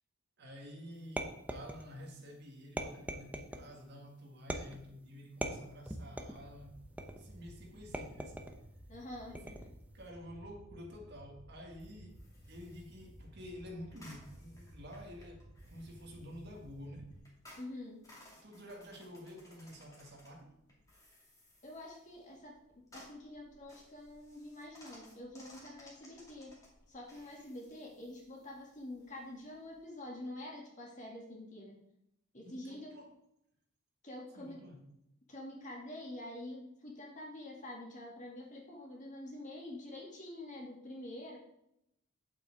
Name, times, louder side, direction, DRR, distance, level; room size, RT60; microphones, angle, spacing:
voice 1, 0.4-6.8 7.2-8.4 9.3-9.6 9.9-17.1 18.2-20.5 32.4-33.1 34.3-34.8, equal, 55° right, 1 dB, 1.8 m, -50 dB
sound 1, 1.2-2.1 2.8-3.7 4.5-4.9 5.4-6.5 7.0-7.4 7.9-8.6 9.3-9.8, right 1 dB, 5° right, 0.7 m, -40 dB
Fire, 6.3-17.2, equal, 30° right, 1.8 m, -55 dB
voice 2, 8.9-9.4 17.6-18.0 21.6-22.6 22.9-26.5 26.9-31.8 32.3-32.9 34.0-34.6 35.3-41.4, left 1 dB, 35° left, -2 dB, 2.4 m, -47 dB
sound 2, 11.8-30.0, left 1 dB, 15° left, 2.4 m, -61 dB
8.7 x 7.7 x 3.7 m, 0.79 s
head